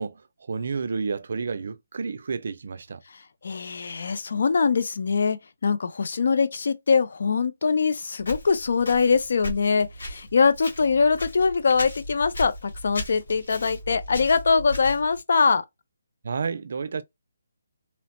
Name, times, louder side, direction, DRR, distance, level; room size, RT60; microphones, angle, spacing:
voice 1, 0.0-3.0 16.2-17.0, right 5 dB, 55° right, 0.4 m, -30 dB
voice 2, 3.1-15.6, left 5 dB, 60° left, 0.5 m, -23 dB
Walk footsteps, 8.2-15.2, left 1 dB, 75° left, 1.6 m, -37 dB
3.0 x 2.0 x 2.9 m
hypercardioid pair, 165°, 0 cm